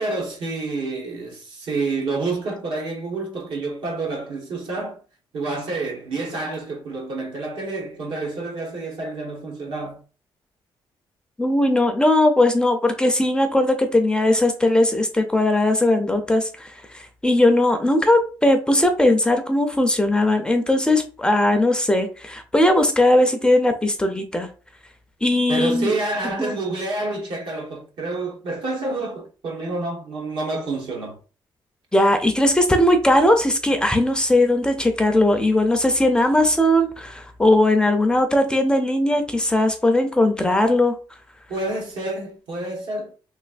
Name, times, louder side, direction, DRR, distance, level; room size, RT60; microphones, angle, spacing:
voice 1, 0.0-5.0 5.3-10.0 25.5-31.2 41.5-43.1, right 3 dB, 70° right, 1.2 m, -28 dB
voice 2, 11.4-24.5 25.2-26.0 26.4-26.6 31.9-40.9, left 1 dB, 10° left, 0.4 m, -19 dB
3.4 x 3.1 x 2.5 m
cardioid pair, 150°, 9 cm